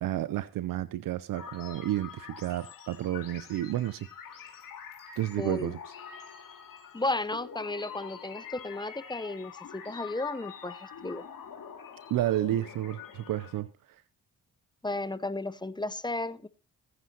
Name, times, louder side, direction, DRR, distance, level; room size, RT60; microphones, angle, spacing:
voice 1, 0.0-4.1 5.2-5.8 12.1-13.7, right 13 dB, 75° right, 0.6 m, -31 dB
sound 1, 1.3-13.6, left 7 dB, 70° left, 2.5 m, -46 dB
voice 2, 5.4-5.8 6.9-11.2 14.8-16.5, left 2 dB, 15° left, 0.8 m, -34 dB
19.5 x 9.6 x 2.9 m
supercardioid pair, 50°, 34 cm